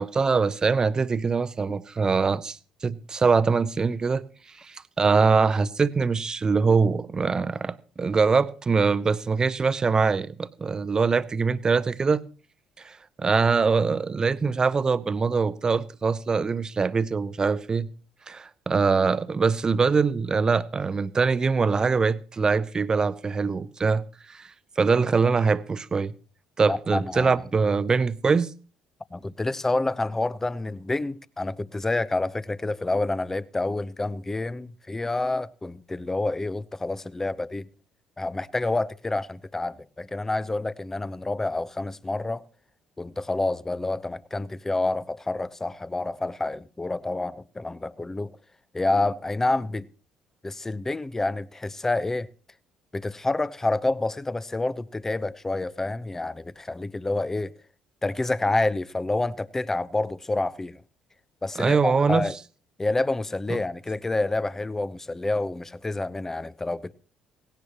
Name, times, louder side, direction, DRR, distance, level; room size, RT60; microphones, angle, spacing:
voice 1, 0.0-2.6 2.8-4.2 4.6-12.2 12.8-17.9 18.3-24.0 24.3-24.5 24.8-26.1 26.6-28.5 61.6-62.3, right 4 dB, 35° right, 0.8 m, -23 dB
voice 2, 26.7-27.4 29.1-37.7 38.2-42.4 43.0-48.3 48.7-49.9 50.4-52.3 52.9-57.5 58.0-60.8 61.4-62.4 62.8-66.9, left 2 dB, 20° left, 0.7 m, -28 dB
17.0 x 17.0 x 2.9 m
hypercardioid pair, 55°, 2 cm